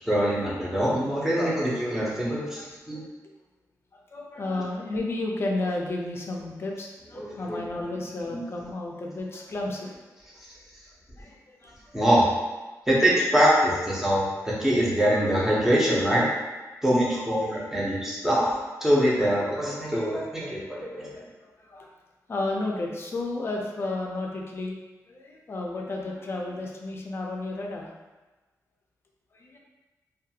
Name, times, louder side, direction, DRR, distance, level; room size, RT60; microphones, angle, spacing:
voice 1, 0.0-3.0 7.1-7.6 8.3-8.4 11.9-12.3 12.9-16.3 16.8-18.5 18.8-21.2, equal, 5° right, -6 dB, 0.6 m, -24 dB
voice 2, 2.2-2.7 2.9-3.1 3.9-9.9 11.2-11.9 14.0-14.1 17.1-17.2 19.9-20.0 21.4-21.9 22.3-24.8 25.1-27.9 29.3-29.6, left 2 dB, 40° left, -1 dB, 0.4 m, -33 dB
2.5 x 2.3 x 2.7 m, 1.2 s
wide cardioid pair, 145°, 6 cm